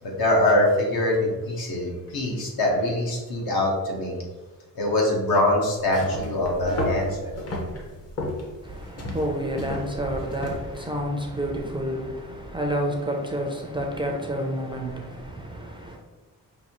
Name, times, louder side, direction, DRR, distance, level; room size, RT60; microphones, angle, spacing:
voice 1, 0.0-4.1 4.7-7.3, left 1 dB, 75° left, 1.2 m, -23 dB
sound 1, 5.8-10.9, left 1 dB, 40° left, 0.8 m, -33 dB
voice 2, 8.6-16.0, equal, 15° right, 0.3 m, -29 dB
5.3 x 2.7 x 2.9 m
wide cardioid pair, 165°, 36 cm